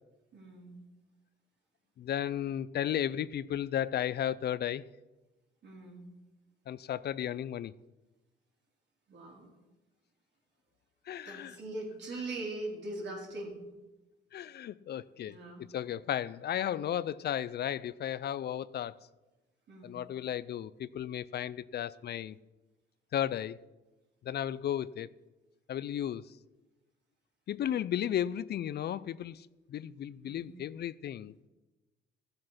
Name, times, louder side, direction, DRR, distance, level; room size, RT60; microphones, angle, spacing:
voice 1, 0.3-0.8 5.6-6.1 9.1-9.5 11.2-13.6 15.3-15.6 19.7-20.0 30.2-30.6, right 2 dB, 60° right, 4.4 m, -41 dB
voice 2, 2.0-4.9 6.7-7.7 11.1-11.5 14.3-15.4 15.7-19.0 19.8-22.4 23.1-23.6 24.2-25.1 25.7-26.2 27.5-31.3, left 10 dB, 55° left, 0.4 m, -34 dB
15.5 x 7.8 x 5.8 m
cardioid pair, 90°, 20 cm